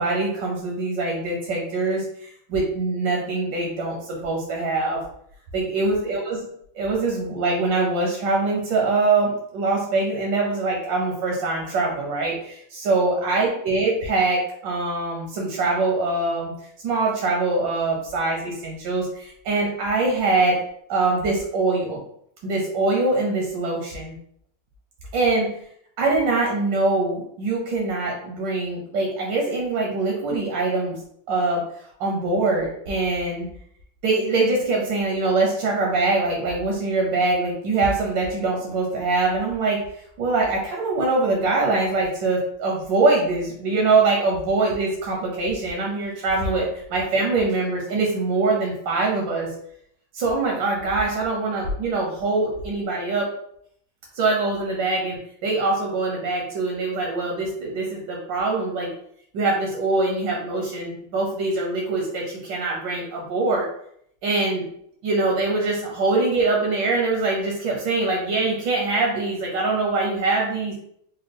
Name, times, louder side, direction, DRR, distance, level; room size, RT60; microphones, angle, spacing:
voice 1, 0.0-5.0 5.5-6.5 6.7-16.5 16.8-20.6 20.9-22.0 22.4-24.1 25.1-25.5 26.0-31.0 31.3-31.6 32.0-33.5 34.0-39.8 40.2-49.5 50.1-53.3 54.1-58.9 59.3-63.7 64.2-64.7 65.0-70.7, right 3 dB, 85° right, -1 dB, 1.5 m, -23 dB
4.1 x 2.3 x 3.3 m, 0.69 s
omnidirectional pair, 1.9 m